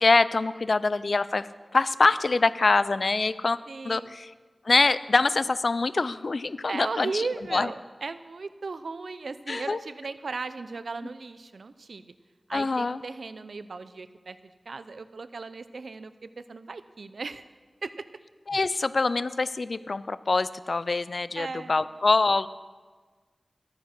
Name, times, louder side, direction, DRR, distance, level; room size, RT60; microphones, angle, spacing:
voice 1, 0.0-3.6 3.8-4.3 4.6-7.2 7.5-7.7 9.5-9.8 12.5-13.0 18.5-22.5, left 3 dB, 65° left, 16 dB, 0.4 m, -24 dB
voice 2, 3.7-4.2 6.7-12.1 12.5-14.4 14.7-17.4 17.8-18.0 21.3-21.8, right 4 dB, 80° right, 13 dB, 0.5 m, -36 dB
13.5 x 9.3 x 5.9 m, 1.4 s
wide cardioid pair, 60°, 0 cm